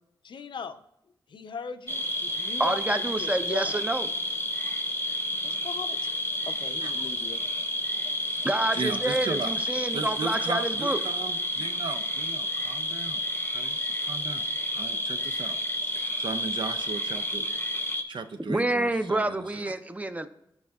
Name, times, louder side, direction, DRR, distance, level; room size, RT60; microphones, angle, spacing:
voice 1, 0.2-0.8 1.3-3.8 5.4-6.1 6.5-7.4, left 6 dB, 70° left, 9 dB, 0.5 m, -39 dB
sound 1, 1.9-18.0, equal, 25° left, 0.7 m, -30 dB
voice 2, 2.6-4.1 8.4-11.0 18.4-20.3, right 1 dB, 15° right, 10 dB, 0.5 m, -28 dB
voice 3, 8.1-8.5 8.7-15.6 15.8-17.5 18.1-19.6, right 4 dB, 75° right, 9 dB, 0.5 m, -37 dB
12.0 x 4.8 x 2.3 m, 0.77 s
cardioid pair, 65°, 8 cm